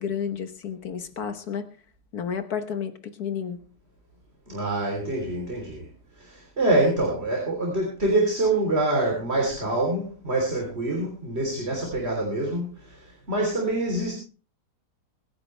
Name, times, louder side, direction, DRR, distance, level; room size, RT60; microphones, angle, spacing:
voice 1, 0.0-1.7 2.1-3.6, left 7 dB, 70° left, 9 dB, 1.6 m, -31 dB
voice 2, 4.5-5.8 6.2-14.1, right 2 dB, 40° right, 0 dB, 3.7 m, -25 dB
24.5 x 9.9 x 3.3 m, 0.37 s
omnidirectional pair, 1.7 m